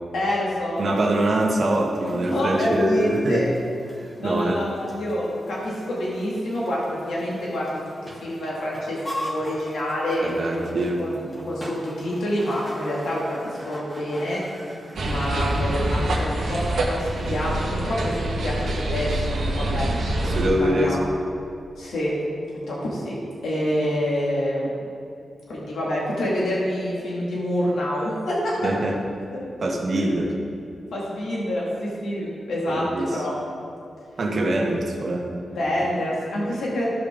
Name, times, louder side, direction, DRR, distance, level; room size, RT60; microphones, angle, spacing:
voice 1, 0.1-0.8 2.3-3.5 4.2-10.7 11.0-11.2 11.5-13.4 13.6-14.4 15.0-21.0 21.8-22.1 22.7-23.2 23.4-24.7 25.5-28.7 29.3-29.4 29.9-30.1 30.9-32.9 33.1-33.3 35.5-37.0, equal, 85° left, -5 dB, 2.0 m, -27 dB
Chicken rooster, 0.7-13.7, equal, 35° left, 2.2 m, -42 dB
voice 2, 0.8-3.5 4.0-4.6 10.2-11.0 20.2-21.0 28.6-29.0 29.6-30.4 32.7-33.2 34.2-35.3 35.8-35.9, right 1 dB, 55° right, -1 dB, 1.5 m, -24 dB
sound 1, 6.5-17.6, equal, 5° left, 1.9 m, -44 dB
sound 2, 15.0-20.5, right 1 dB, 75° right, 1.6 m, -25 dB
14.5 x 5.2 x 3.6 m, 2.6 s
cardioid pair, 90°, 0 cm